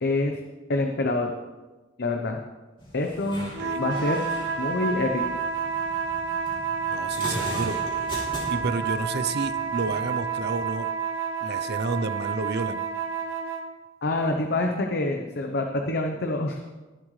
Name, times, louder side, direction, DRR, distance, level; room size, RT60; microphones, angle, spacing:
voice 1, 0.0-0.4 0.7-1.3 2.0-2.4 2.9-3.5 3.7-4.2 4.6-5.2 14.0-16.6, left 2 dB, 55° left, 3 dB, 0.9 m, -26 dB
sound 1, 2.8-10.8, left 1 dB, 25° left, 3.0 m, -39 dB
voice 2, 3.3-3.8 6.9-7.8 8.5-10.9 11.4-12.9, right 3 dB, 55° right, 12 dB, 0.6 m, -30 dB
sound 2, 3.5-13.7, right 6 dB, 70° right, 1.1 m, -29 dB
20.0 x 7.6 x 3.3 m, 1.2 s
head